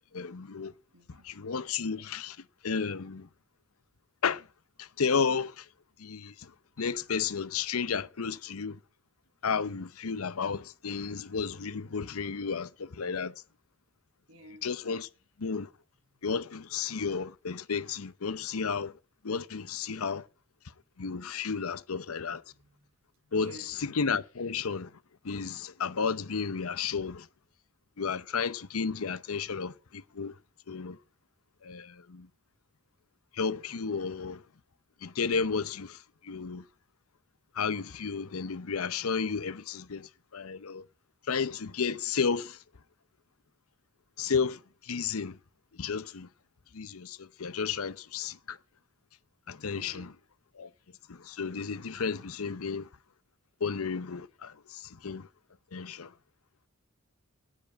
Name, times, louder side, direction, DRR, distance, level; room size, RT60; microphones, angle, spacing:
voice 1, 0.1-0.7 1.1-3.3 4.2-4.5 4.8-5.7 6.0-8.8 9.4-13.3 14.6-15.1 15.4-15.7 16.2-19.0 19.2-20.3 21.0-22.4 23.3-24.9 25.2-27.3 28.0-30.4 30.7-31.0 31.6-32.3 33.3-34.4 35.0-36.6 37.5-40.9 41.3-42.6 44.2-45.4 45.7-46.3 46.7-48.6 49.5-50.1 50.5-50.7 51.1-52.9 53.6-55.3 55.7-56.1, left 5 dB, 85° left, 0.8 m, -33 dB
voice 2, 0.9-1.3 14.3-14.7 16.1-16.2 22.5-22.9 23.2-23.7 49.7-50.1, right 1 dB, 70° right, 3.2 m, -52 dB
9.9 x 9.6 x 8.4 m
head